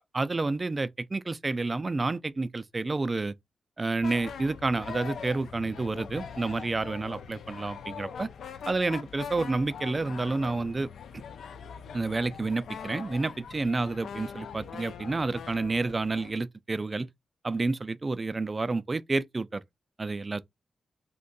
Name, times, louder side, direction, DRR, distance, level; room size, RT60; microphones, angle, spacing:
voice 1, 0.1-3.3 3.8-8.3 8.7-10.9 11.9-17.1 17.4-19.6 20.0-20.4, right 3 dB, 35° right, 0.3 m, -29 dB
sound 1, 4.0-16.3, left 7 dB, 85° left, 0.4 m, -42 dB
2.6 x 2.2 x 3.8 m
cardioid pair, 70°, 0 cm